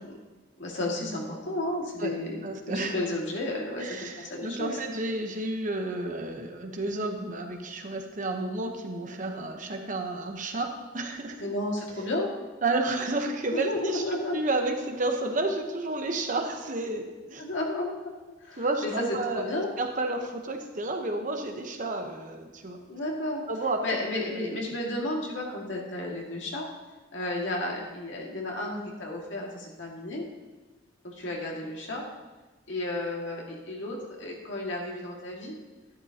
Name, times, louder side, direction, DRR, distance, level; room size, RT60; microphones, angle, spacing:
voice 1, 0.6-4.8 11.4-12.3 13.5-14.4 17.4-17.9 18.4-19.7 22.9-23.4 23.8-26.7 27.1-30.2 31.0-32.0 32.7-35.5, left 1 dB, 80° left, -2 dB, 2.1 m, -32 dB
voice 2, 2.4-2.9 3.8-11.4 12.6-17.4 18.6-22.8 23.5-23.9 24.1-24.6, right 2 dB, 45° right, 4 dB, 1.0 m, -31 dB
11.5 x 11.5 x 2.9 m, 1.2 s
head